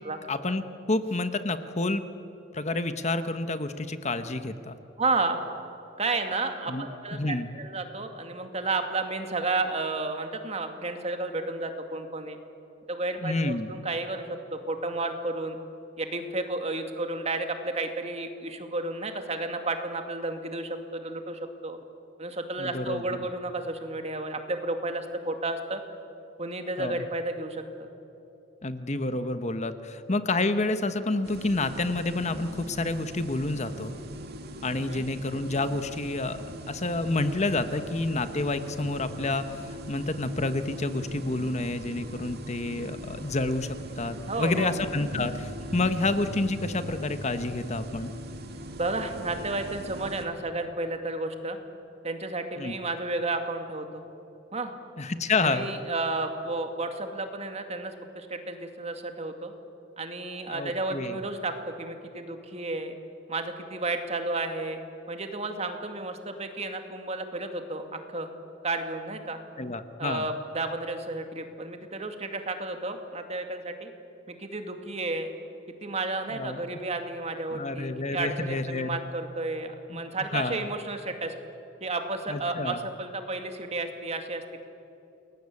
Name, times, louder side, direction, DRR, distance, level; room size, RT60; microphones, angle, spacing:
voice 1, 0.3-0.6 0.9-2.0 2.5-4.8 6.7-6.9 7.1-7.5 13.2-13.7 22.6-23.0 26.8-27.0 28.6-33.9 34.6-36.4 36.7-48.1 52.6-52.7 55.0-55.7 60.5-61.2 69.6-70.3 76.3-76.6 77.5-79.0 79.9-80.0 80.3-80.6 82.3-82.8, left 2 dB, 40° left, 10 dB, 1.2 m, -29 dB
voice 2, 5.0-5.4 6.0-12.4 12.9-15.6 16.0-21.8 22.2-25.8 26.4-27.9 34.7-35.0 44.3-44.7 48.8-51.6 52.0-54.0 54.5-54.7 55.4-59.5 60.0-61.5 61.8-63.0 63.3-64.8 65.1-68.3 68.6-69.4 70.0-73.9 74.3-75.3 75.8-81.3 81.8-84.6, right 2 dB, 35° right, 6 dB, 2.4 m, -32 dB
sound 1, 31.2-50.3, right 1 dB, 60° right, 2.5 m, -40 dB
29.0 x 21.5 x 8.5 m, 2.9 s
head